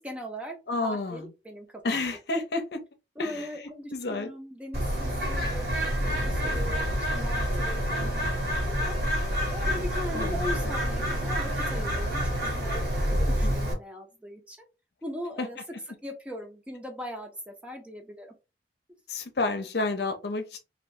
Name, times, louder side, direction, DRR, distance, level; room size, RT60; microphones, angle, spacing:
voice 1, 0.0-0.6 0.8-2.0 3.2-8.4 8.6-9.0 9.3-14.7 15.0-15.6 16.0-18.3, equal, 5° right, 0.6 m, -40 dB
voice 2, 0.7-1.3 1.8-2.8 3.2-4.3 10.1-10.5 13.3-13.5 15.4-15.5 19.1-20.6, left 3 dB, 65° left, 0.7 m, -30 dB
Bird, 4.7-13.7, equal, 55° right, 1.6 m, -28 dB
2.7 x 2.6 x 3.2 m
head